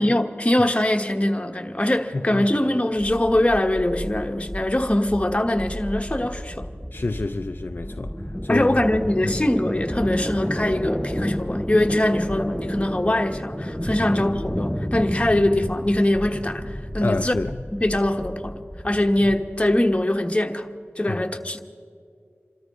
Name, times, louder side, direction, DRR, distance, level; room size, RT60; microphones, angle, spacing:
voice 1, 0.0-6.7 8.5-17.4 17.7-20.7 21.0-21.6, left 1 dB, 25° left, 1.2 m, -22 dB
voice 2, 2.1-2.5 6.9-8.1 8.4-8.8 17.0-17.6 21.1-21.2, left 2 dB, 45° left, 0.4 m, -27 dB
sound 1, 2.9-20.0, equal, ahead, 5.2 m, -31 dB
28.0 x 13.5 x 3.7 m
wide cardioid pair, 55°, 5 cm